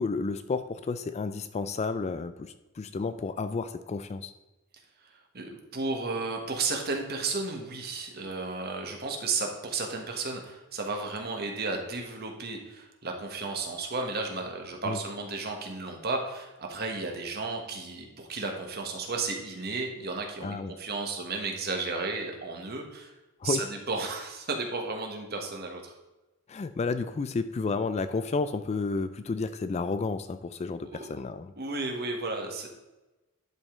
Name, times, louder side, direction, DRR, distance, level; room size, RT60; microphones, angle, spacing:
voice 1, 0.0-4.3 14.8-15.0 20.4-20.7 23.4-23.6 26.5-31.5, left 4 dB, 30° left, 11 dB, 0.3 m, -31 dB
voice 2, 5.0-23.1 23.4-25.9 30.8-31.1 31.6-32.7, right 3 dB, 45° right, 3 dB, 1.3 m, -33 dB
11.0 x 5.1 x 3.7 m, 1.1 s
head